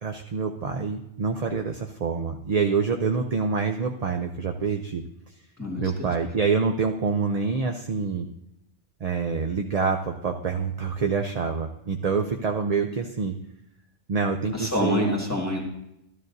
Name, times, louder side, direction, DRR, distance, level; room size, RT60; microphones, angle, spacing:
voice 1, 0.0-5.0 5.8-8.3 9.0-13.4 14.1-15.1, right 5 dB, 45° right, 4 dB, 0.6 m, -26 dB
voice 2, 5.6-6.1 14.5-15.6, left 1 dB, 15° left, -2 dB, 1.8 m, -27 dB
13.0 x 13.0 x 2.7 m, 0.81 s
omnidirectional pair, 1.1 m